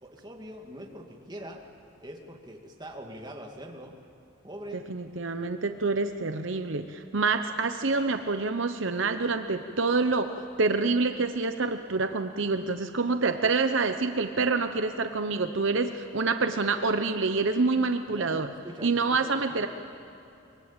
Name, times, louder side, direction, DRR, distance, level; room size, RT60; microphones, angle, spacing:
voice 1, 0.0-1.6 2.0-4.0 4.4-4.8 18.1-19.3 19.6-19.7, equal, 20° right, 1 dB, 2.3 m, -43 dB
voice 2, 4.9-18.5 18.8-19.7, right 4 dB, 65° right, 8 dB, 0.9 m, -27 dB
23.5 x 23.0 x 9.0 m, 2.7 s
head